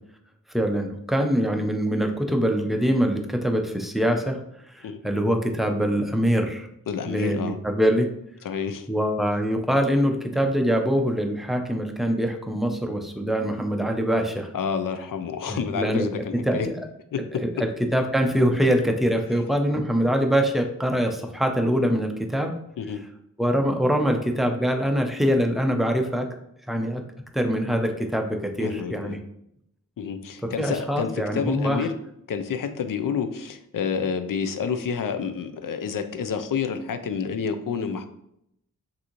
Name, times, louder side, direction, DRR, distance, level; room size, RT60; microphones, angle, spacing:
voice 1, 0.5-4.4 4.7-6.7 7.1-8.1 8.9-14.5 15.5-16.1 16.4-16.7 17.4-17.5 17.9-22.5 23.4-26.3 26.7-27.0 27.3-29.2 30.6-31.9, equal, ahead, 4 dB, 0.5 m, -24 dB
voice 2, 6.9-7.6 8.4-8.9 14.5-16.7 17.1-17.2 22.8-23.0 28.6-29.2 30.0-31.9 32.3-38.1, left 6 dB, 75° left, 9 dB, 0.5 m, -29 dB
6.1 x 2.7 x 2.9 m, 0.77 s
wide cardioid pair, 105°, 33 cm